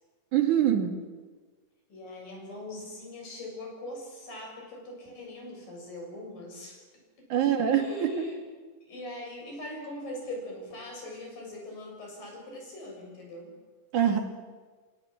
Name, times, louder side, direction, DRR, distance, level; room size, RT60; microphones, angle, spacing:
voice 1, 0.3-1.0 7.3-8.3 13.9-14.2, right 9 dB, 65° right, 5 dB, 3.5 m, -24 dB
voice 2, 1.9-6.8 7.7-8.4 8.9-13.5, left 1 dB, 85° left, 1 dB, 9.1 m, -41 dB
28.0 x 24.5 x 7.6 m, 1.4 s
omnidirectional pair, 3.9 m